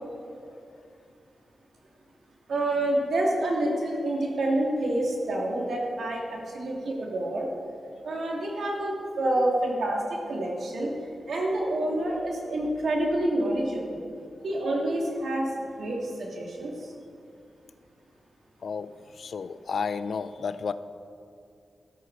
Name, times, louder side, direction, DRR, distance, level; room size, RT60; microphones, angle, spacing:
voice 1, 2.5-7.5 8.0-10.9 11.3-14.0 14.4-15.5 15.8-16.9, right 1 dB, 75° right, -1 dB, 2.7 m, -28 dB
voice 2, 18.6-20.7, left 5 dB, 70° left, 13 dB, 0.5 m, -32 dB
13.5 x 13.0 x 4.9 m, 2.5 s
wide cardioid pair, 135°, 0 cm